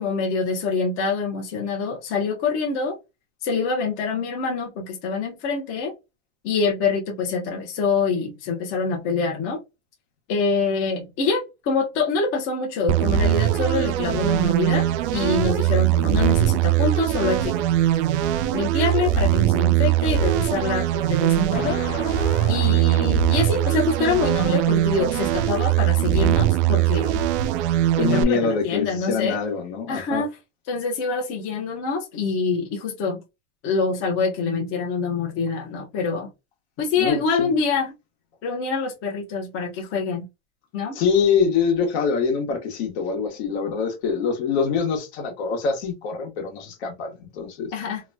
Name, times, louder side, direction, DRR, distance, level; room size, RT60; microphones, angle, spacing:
voice 1, 0.0-3.0 3.4-5.9 6.4-9.6 10.3-14.9 15.1-17.6 18.5-21.8 22.5-27.2 28.1-29.4 29.9-30.3 30.7-33.2 33.6-36.3 36.8-37.9 38.4-40.2 40.7-41.0 47.7-48.0, left 4 dB, 40° left, 0.8 m, -25 dB
sound 1, 12.9-28.2, right 12 dB, 70° right, 0.5 m, -21 dB
Explosion, 21.5-24.5, left 4 dB, 85° left, 0.8 m, -35 dB
voice 2, 22.5-22.8 28.0-30.2 37.0-37.5 40.9-47.7, left 6 dB, 70° left, 1.2 m, -24 dB
2.9 x 2.2 x 2.6 m
supercardioid pair, 145°, 35 cm